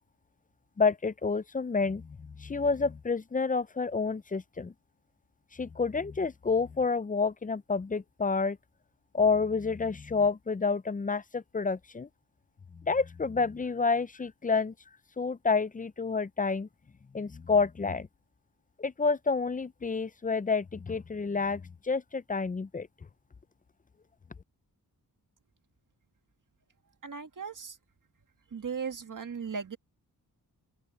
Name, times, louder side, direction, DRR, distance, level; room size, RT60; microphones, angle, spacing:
voice 1, 0.8-4.7 5.5-8.6 9.1-12.1 12.7-14.7 15.2-16.7 17.1-18.1 18.8-22.9, left 4 dB, 25° left, 0.4 m, -29 dB
voice 2, 27.0-27.8 28.5-29.8, right 6 dB, 55° right, 1.8 m, -37 dB
open air
wide cardioid pair, 120°, 37 cm